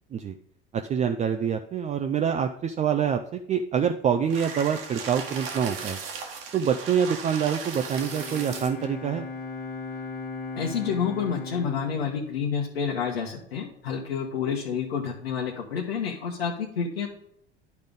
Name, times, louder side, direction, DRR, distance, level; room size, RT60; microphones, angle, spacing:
voice 1, 0.7-6.0 6.5-9.3, right 8 dB, 25° right, 6 dB, 0.5 m, -26 dB
sound 1, 4.3-8.9, right 5 dB, 65° right, 1.7 m, -37 dB
Bowed string instrument, 7.8-13.4, left 3 dB, 25° left, 1.9 m, -38 dB
voice 2, 10.6-17.1, left 6 dB, 70° left, -1 dB, 1.1 m, -29 dB
10.5 x 5.1 x 3.6 m, 0.72 s
figure-of-eight pair, 75°, 31 cm